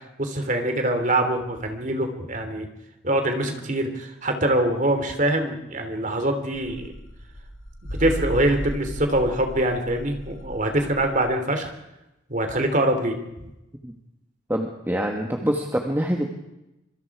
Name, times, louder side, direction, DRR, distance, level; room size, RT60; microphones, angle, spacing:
voice 1, 0.2-2.7 3.0-6.9 7.8-11.7 12.3-13.2, right 1 dB, 40° right, 6 dB, 3.1 m, -24 dB
sound 1, 6.5-11.2, equal, 85° left, 5.3 m, -35 dB
voice 2, 14.5-16.3, equal, 10° right, 2 dB, 1.6 m, -25 dB
25.5 x 24.5 x 4.9 m, 0.92 s
head